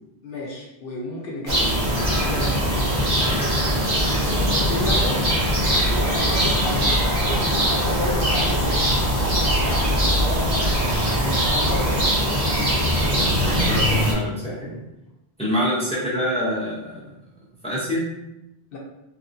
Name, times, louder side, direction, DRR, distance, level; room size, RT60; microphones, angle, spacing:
voice 1, 0.2-3.0 3.3-3.5 4.2-5.2 5.6-9.0 9.9-12.2 18.7-18.8, left 1 dB, 65° left, -2 dB, 0.8 m, -32 dB
sound 1, 1.5-14.1, equal, 45° right, 0.9 m, -21 dB
voice 2, 4.0-4.4 10.6-10.7 13.5-14.8 15.4-17.0 17.6-18.1, equal, 5° left, -6 dB, 0.6 m, -26 dB
3.0 x 2.7 x 2.5 m, 0.90 s
omnidirectional pair, 1.1 m